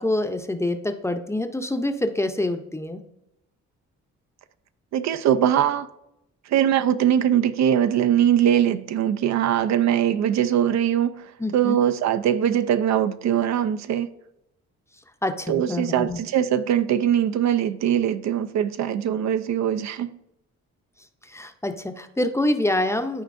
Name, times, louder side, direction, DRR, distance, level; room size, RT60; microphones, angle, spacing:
voice 1, 0.0-3.0 11.4-11.8 15.2-16.2 21.2-23.2, left 1 dB, 10° left, 0.6 m, -26 dB
voice 2, 4.9-5.9 6.5-14.1 15.5-20.1, right 10 dB, 65° right, 0.5 m, -22 dB
12.5 x 4.4 x 2.6 m
cardioid pair, 90°, 30 cm